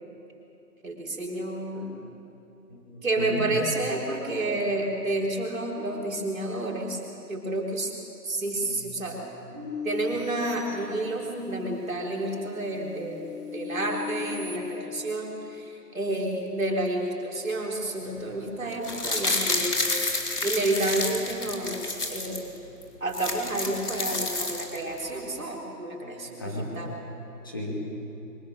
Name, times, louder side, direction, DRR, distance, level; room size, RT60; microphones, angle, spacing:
voice 1, 0.8-1.9 3.0-7.0 7.3-7.9 8.2-9.2 9.8-20.0 20.4-22.5 23.0-26.9, right 2 dB, 50° right, -1 dB, 4.3 m, -30 dB
voice 2, 2.7-3.5 4.6-4.7 8.5-9.8 10.1-10.2 10.7-10.8 18.0-18.4 19.7-19.8 26.0-26.9 27.4-27.8, left 1 dB, 15° left, -3 dB, 1.7 m, -38 dB
sound 1, 9.5-11.5 12.0-14.6, left 6 dB, 5° right, 1.6 m, -38 dB
sound 2, 18.7-22.4 22.8-22.9 23.1-25.0 25.3-25.4, left 2 dB, 65° left, 3.4 m, -29 dB
23.5 x 21.0 x 6.6 m, 2.8 s
figure-of-eight pair, 165°, 50 cm